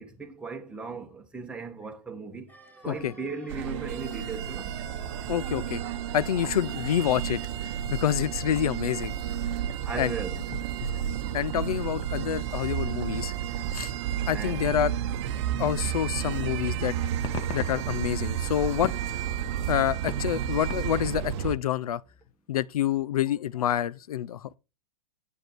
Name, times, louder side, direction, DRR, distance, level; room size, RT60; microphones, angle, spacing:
voice 1, 0.0-2.5 2.8-4.7 9.5-10.4 14.3-14.7, right 4 dB, 5° right, 1.2 m, -37 dB
sound 1, 2.5-12.4 12.7-12.8, right 2 dB, 10° left, 2.6 m, -53 dB
sound 2, 3.5-21.6, right 10 dB, 50° right, 0.8 m, -31 dB
voice 2, 5.3-5.8 6.1-9.1 10.0-10.1 10.8-11.0 11.3-13.3 13.7-13.9 14.3-14.9 15.6-16.9 17.5-18.9 19.7-22.0 22.5-24.6, left 10 dB, 85° left, 0.5 m, -27 dB
sound 3, 16.2-16.3 16.8-21.4, left 9 dB, 25° left, 0.7 m, -42 dB
8.2 x 5.0 x 4.5 m
hypercardioid pair, 140°, 18 cm